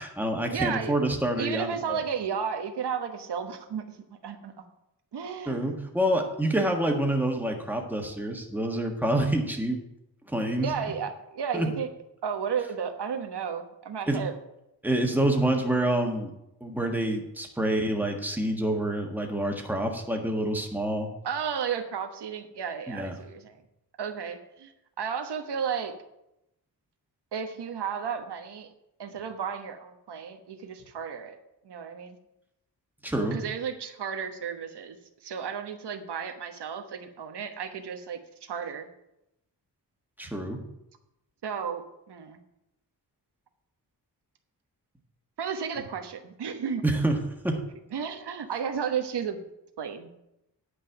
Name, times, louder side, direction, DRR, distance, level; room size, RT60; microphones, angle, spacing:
voice 1, 0.0-2.0 5.4-9.8 10.3-10.7 11.5-11.7 14.1-14.2 14.8-16.3 16.6-21.1 22.9-23.2 33.0-33.4 40.2-40.6 46.8-47.6, right 1 dB, 5° right, 2 dB, 1.5 m, -27 dB
voice 2, 0.5-0.9 1.4-4.0 4.2-4.5 5.1-5.7 10.6-11.9 12.2-14.3 21.2-23.6 24.0-24.7 25.0-25.9 27.3-28.7 29.0-31.4 31.6-32.2 33.3-38.9 41.4-42.4 45.4-46.8 47.9-49.4 49.8-50.2, right 7 dB, 80° right, 6 dB, 1.2 m, -33 dB
9.9 x 5.4 x 7.8 m, 0.87 s
wide cardioid pair, 115°, 40 cm